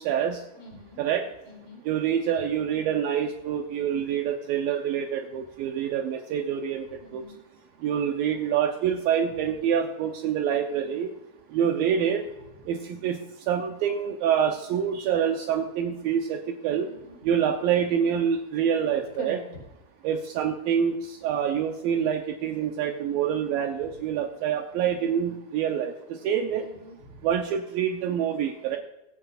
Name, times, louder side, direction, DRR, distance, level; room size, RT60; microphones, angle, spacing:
voice 1, 0.0-0.4 1.0-1.3 1.8-7.2 7.8-11.1 11.5-12.2 12.7-16.9 17.2-19.4 20.0-26.7 27.2-28.8, right 8 dB, 85° right, 3 dB, 2.1 m, -26 dB
voice 2, 0.6-1.0 1.5-1.8 7.0-7.4 10.7-11.0 16.9-17.2 19.2-19.6 26.6-27.2, left 1 dB, 30° left, -1 dB, 4.1 m, -44 dB
24.0 x 9.0 x 2.5 m, 0.96 s
omnidirectional pair, 5.2 m